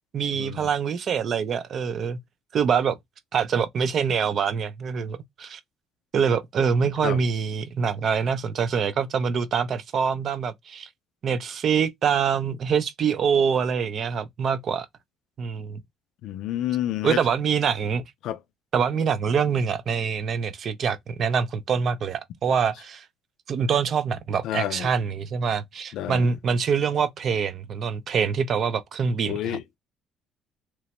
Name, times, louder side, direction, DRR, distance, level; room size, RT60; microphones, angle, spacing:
voice 1, 0.1-2.2 2.5-3.0 3.3-5.6 6.1-10.9 11.2-14.9 15.4-15.8 17.0-18.0 18.7-23.0 23.5-29.6, right 6 dB, 50° right, 0.5 m, -25 dB
voice 2, 16.2-17.2 18.2-18.4 24.4-24.9 25.9-26.3 29.2-29.6, left 12 dB, 75° left, 0.3 m, -29 dB
2.9 x 2.1 x 2.9 m
cardioid pair, 105°, 0 cm